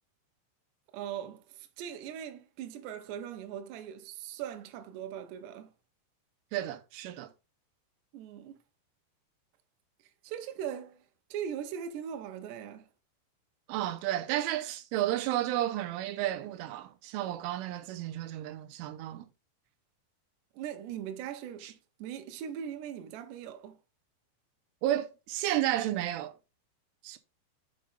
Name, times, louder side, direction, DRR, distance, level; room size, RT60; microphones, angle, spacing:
voice 1, 0.9-5.7 8.1-8.6 10.2-11.0 11.3-12.9 20.5-23.8, right 9 dB, 75° right, 2.7 m, -40 dB
voice 2, 6.5-7.3 13.7-19.3 21.6-21.7 24.8-26.3 27.0-27.2, right 13 dB, 90° right, 3.2 m, -32 dB
7.5 x 5.0 x 3.4 m
omnidirectional pair, 5.7 m